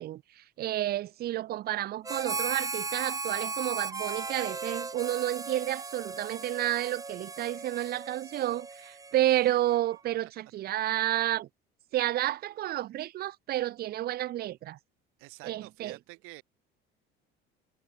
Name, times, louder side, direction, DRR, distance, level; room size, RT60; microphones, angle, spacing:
voice 1, 0.0-11.5 11.9-14.8 15.4-16.0, right 14 dB, 45° right, 0.7 m, -30 dB
Harmonica, 2.0-9.8, right 4 dB, 15° right, 2.6 m, -37 dB
voice 2, 15.2-16.4, right 24 dB, 85° right, 4.8 m, -48 dB
cardioid pair, 140°, 21 cm